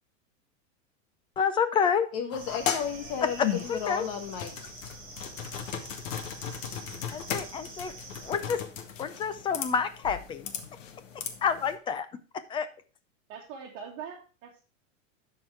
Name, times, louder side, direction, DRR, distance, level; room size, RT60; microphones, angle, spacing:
voice 1, 1.4-2.1 3.4-4.1 7.1-7.9 8.2-8.6 9.0-10.5 11.4-12.2 12.5-12.7, left 6 dB, 15° left, 11 dB, 0.4 m, -28 dB
voice 2, 2.1-4.5, left 7 dB, 45° left, 6 dB, 1.3 m, -33 dB
sound 1, 2.3-11.7, left 8 dB, 75° left, 1.8 m, -37 dB
sound 2, 2.4-8.3, right 4 dB, 20° right, 3.1 m, -47 dB
voice 3, 13.3-14.6, right 7 dB, 40° right, -2 dB, 1.9 m, -42 dB
12.0 x 4.6 x 4.6 m, 0.35 s
supercardioid pair, 145°, 39 cm